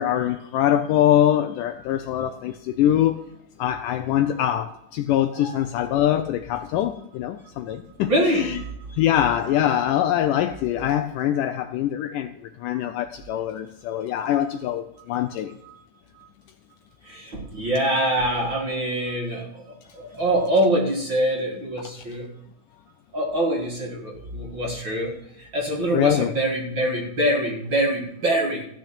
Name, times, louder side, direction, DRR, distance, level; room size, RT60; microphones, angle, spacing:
voice 1, 0.0-3.3 3.6-8.6 8.9-12.3 12.6-15.6 25.9-26.3, left 11 dB, 80° left, 2.0 m, -23 dB
voice 2, 8.1-8.6 8.9-9.0 17.1-22.3 23.1-28.7, right 1 dB, 40° right, 2.2 m, -24 dB
15.5 x 6.3 x 8.6 m
omnidirectional pair, 4.2 m